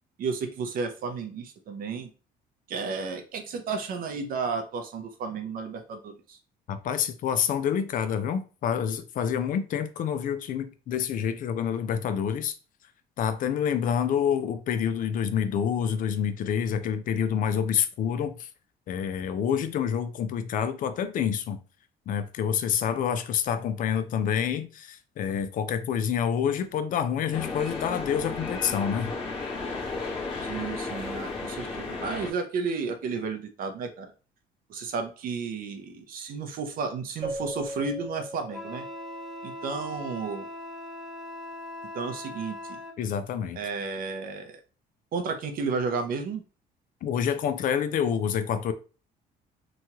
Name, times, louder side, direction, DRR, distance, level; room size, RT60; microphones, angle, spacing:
voice 1, 0.2-2.1 2.7-6.4 30.4-34.1 34.7-38.9 39.4-40.5 41.9-42.8 43.5-44.6 45.1-46.4, right 5 dB, 60° right, 0.5 m, -32 dB
voice 2, 6.7-12.5 13.2-18.5 18.9-21.6 22.1-29.1 43.0-43.6 47.0-48.7, left 8 dB, 55° left, 0.4 m, -27 dB
sound 1, 27.3-32.3, left 3 dB, 35° left, 1.0 m, -34 dB
Keyboard (musical), 37.2-39.7, right 1 dB, 30° right, 0.9 m, -38 dB
Wind instrument woodwind instrument, 38.5-43.0, left 1 dB, ahead, 0.6 m, -40 dB
2.9 x 2.3 x 2.8 m
cardioid pair, 110°, 17 cm